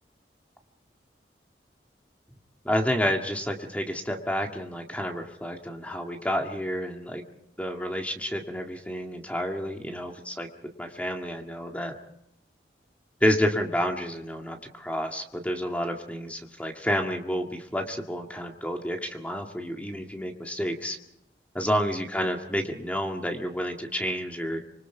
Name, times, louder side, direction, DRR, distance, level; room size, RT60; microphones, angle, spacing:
voice 1, 2.7-7.2 7.6-10.5 10.8-11.9 13.2-21.0 21.5-24.6, equal, 10° left, 3 dB, 1.9 m, -29 dB
26.0 x 24.0 x 4.6 m, 0.81 s
head